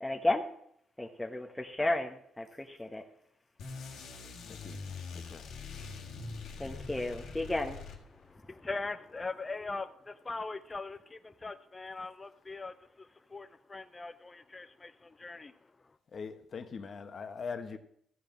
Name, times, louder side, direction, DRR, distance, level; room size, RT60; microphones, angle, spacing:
voice 1, 0.0-0.4 1.0-3.0 6.6-7.8, left 2 dB, 10° left, 1 dB, 1.0 m, -33 dB
sound 1, 3.6-8.4, left 4 dB, 80° left, 1.7 m, -43 dB
voice 2, 4.5-5.5 16.1-17.8, left 5 dB, 45° left, 8 dB, 1.1 m, -42 dB
voice 3, 8.1-15.6, left 3 dB, 25° left, 10 dB, 0.4 m, -41 dB
14.0 x 5.1 x 7.4 m, 0.69 s
cardioid pair, 90°, 0 cm